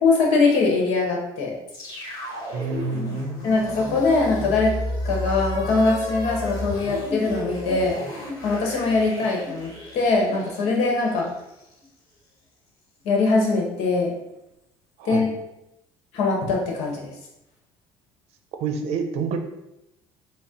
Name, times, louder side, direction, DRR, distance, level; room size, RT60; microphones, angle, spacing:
voice 1, 0.0-1.5 3.4-4.7 5.0-7.9 8.4-11.3 13.0-14.1 15.0-15.3 16.1-17.1, left 3 dB, 80° left, -1 dB, 1.0 m, -22 dB
sound 1, 1.7-11.9, left 1 dB, 40° left, 1.5 m, -33 dB
voice 2, 2.5-3.4 15.0-15.3 18.6-19.4, right 5 dB, 75° right, 5 dB, 0.5 m, -28 dB
4.1 x 2.1 x 3.7 m, 0.88 s
cardioid pair, 110°, 11 cm